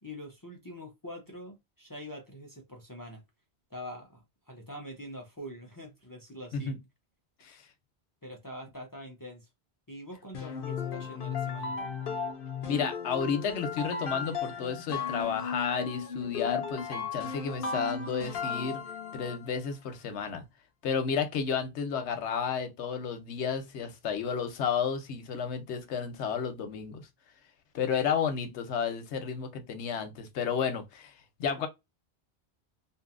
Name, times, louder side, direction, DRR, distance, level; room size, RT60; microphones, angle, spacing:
voice 1, 0.0-3.2 3.7-6.8 8.2-9.5 9.9-11.8, equal, 30° left, 0.4 m, -44 dB
sound 1, 10.3-19.5, left 6 dB, 60° left, 0.8 m, -35 dB
voice 2, 12.7-18.8 19.1-20.4 20.8-27.1 27.7-31.1 31.4-31.7, left 6 dB, 90° left, 1.0 m, -32 dB
2.7 x 2.6 x 2.4 m
omnidirectional pair, 1.1 m